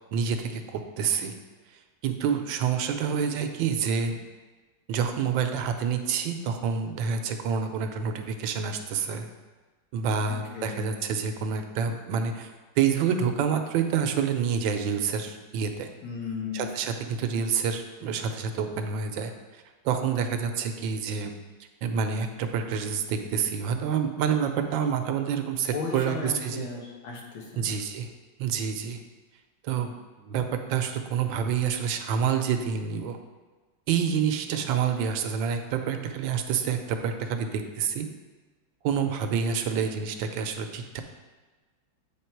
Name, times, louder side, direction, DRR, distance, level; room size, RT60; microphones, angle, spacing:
voice 1, 0.1-1.4 2.0-4.2 4.9-9.3 9.9-12.5 12.8-15.9 16.5-21.3 21.8-26.7 27.6-28.1 28.4-29.0 29.6-29.9 30.2-33.2 33.9-38.1 38.8-41.0, right 7 dB, 80° right, 6 dB, 1.3 m, -28 dB
voice 2, 10.3-11.0 16.0-16.7 17.2-17.3 25.7-27.7, left 5 dB, 80° left, -1 dB, 1.9 m, -36 dB
8.5 x 3.6 x 4.5 m, 1.3 s
omnidirectional pair, 2.1 m